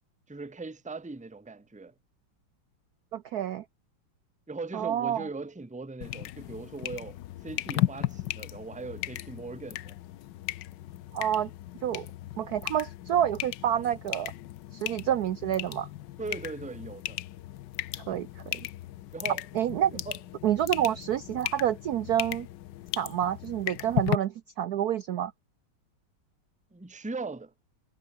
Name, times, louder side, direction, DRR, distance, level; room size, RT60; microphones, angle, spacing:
voice 1, 0.3-1.9 4.5-9.9 16.2-17.2 19.1-19.4 20.1-20.2 26.7-27.5, right 3 dB, 5° right, 1.0 m, -39 dB
voice 2, 3.1-3.6 4.7-5.3 11.1-11.5 11.8-12.1 12.4-14.3 14.7-15.9 17.9-18.7 19.5-20.0 20.4-22.5 23.0-25.3, right 10 dB, 70° right, 1.0 m, -28 dB
sound 1, 6.0-24.2, left 14 dB, 70° left, 1.2 m, -36 dB
omnidirectional pair, 2.3 m